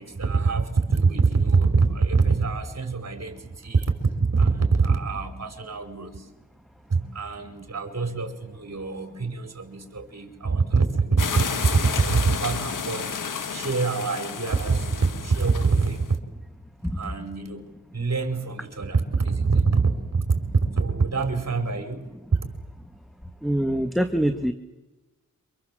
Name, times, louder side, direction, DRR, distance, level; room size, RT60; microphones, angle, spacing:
voice 1, 0.0-6.3 6.9-13.1 13.5-16.2 16.9-22.1, right 4 dB, 55° right, 5 dB, 5.3 m, -24 dB
sound 1, 11.2-16.1, left 6 dB, 90° left, 1.7 m, -31 dB
voice 2, 23.4-24.5, equal, ahead, 8 dB, 1.7 m, -24 dB
27.5 x 26.0 x 7.8 m, 1.1 s
cardioid pair, 55°, 31 cm